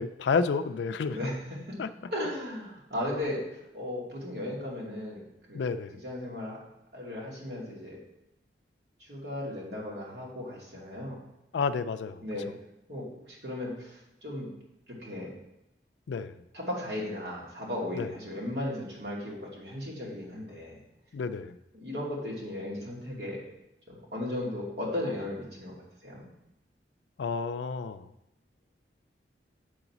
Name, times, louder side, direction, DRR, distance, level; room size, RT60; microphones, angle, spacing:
voice 1, 0.0-1.2 1.8-1.9 5.5-6.0 11.5-12.2 16.1-16.3 17.9-18.1 21.1-21.6 27.2-28.1, left 5 dB, 80° left, 12 dB, 0.4 m, -30 dB
voice 2, 1.1-1.6 2.1-5.2 5.5-5.7 6.0-6.6 6.9-8.0 9.0-11.2 12.2-12.5 12.9-14.5 15.0-15.3 16.5-20.8 21.7-23.4 23.9-25.7 26.0-26.2, left 1 dB, 65° right, -4 dB, 2.3 m, -36 dB
7.6 x 4.0 x 5.9 m, 0.87 s
head